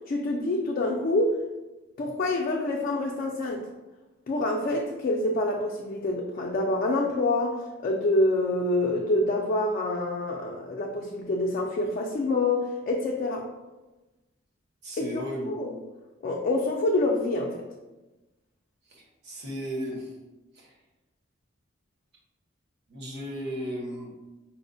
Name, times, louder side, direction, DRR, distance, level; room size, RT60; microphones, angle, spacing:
voice 1, 0.1-1.4 2.0-3.6 4.3-13.4 15.0-15.8 16.2-17.6, left 2 dB, 45° left, -1 dB, 0.3 m, -26 dB
voice 2, 14.8-15.5 18.9-20.1 20.6-20.7 22.9-24.1, equal, 55° right, -3 dB, 0.8 m, -35 dB
4.3 x 2.0 x 2.6 m, 1.1 s
head